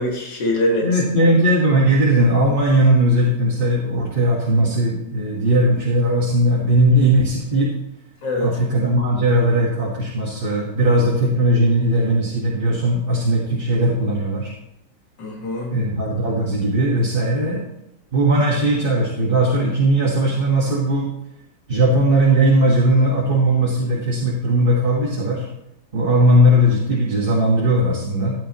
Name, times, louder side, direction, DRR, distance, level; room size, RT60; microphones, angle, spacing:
voice 1, 0.0-1.3 8.2-8.5 15.2-15.7, left 1 dB, 70° left, -1 dB, 2.6 m, -23 dB
voice 2, 0.8-7.7 8.4-14.5 15.7-17.6 18.1-21.1 21.7-25.4 25.9-28.3, right 1 dB, 30° right, -3 dB, 1.6 m, -18 dB
15.0 x 9.7 x 3.0 m, 0.83 s
omnidirectional pair, 2.0 m